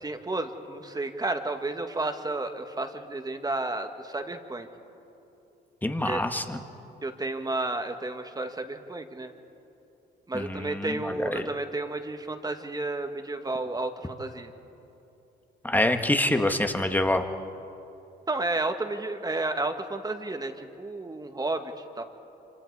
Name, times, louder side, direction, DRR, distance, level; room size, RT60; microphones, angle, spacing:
voice 1, 0.0-4.7 6.0-6.2 7.0-9.3 10.3-14.5 18.3-22.0, right 2 dB, 20° right, 6 dB, 1.7 m, -32 dB
voice 2, 5.8-6.6 10.3-11.5 15.6-17.2, left 1 dB, 10° left, 6 dB, 1.5 m, -26 dB
26.5 x 26.5 x 4.8 m, 2.9 s
cardioid pair, 90°, 20 cm